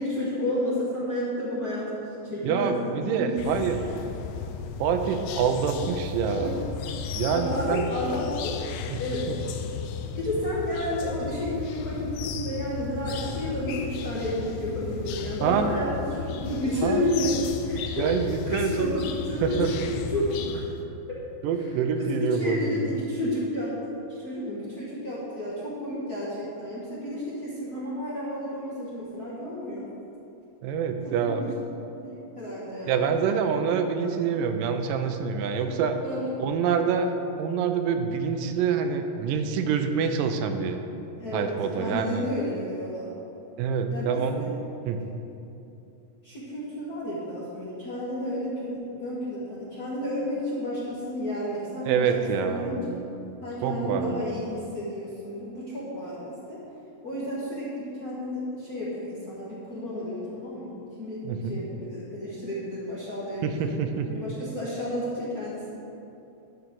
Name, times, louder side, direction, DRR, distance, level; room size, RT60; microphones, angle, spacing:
voice 1, 0.0-2.0 2.2-3.4 5.7-5.8 6.4-6.5 7.3-8.7 9.0-9.4 10.1-19.6 20.1-20.4 22.0-29.9 31.0-31.5 31.9-33.1 35.6-35.7 36.0-36.3 41.2-43.1 43.9-44.5 46.2-52.1 52.4-53.0 53.4-56.6 57.0-63.6 64.1-65.7, left 1 dB, 45° left, -9 dB, 1.2 m, -31 dB
voice 2, 2.4-3.8 4.8-6.6 7.2-7.9 8.9-9.0 15.4-15.7 16.8-17.0 18.0-18.9 19.4-19.7 21.4-22.9 30.6-31.6 32.9-36.0 36.4-40.8 41.3-42.3 43.6-44.5 44.9-45.0 51.9-53.3 53.6-54.3 61.2-61.7 63.4-64.1, right 6 dB, 90° right, 6 dB, 2.3 m, -26 dB
sound 1, 3.4-20.8, left 7 dB, 90° left, 2.2 m, -35 dB
11.0 x 5.1 x 6.2 m, 2.8 s
omnidirectional pair, 3.7 m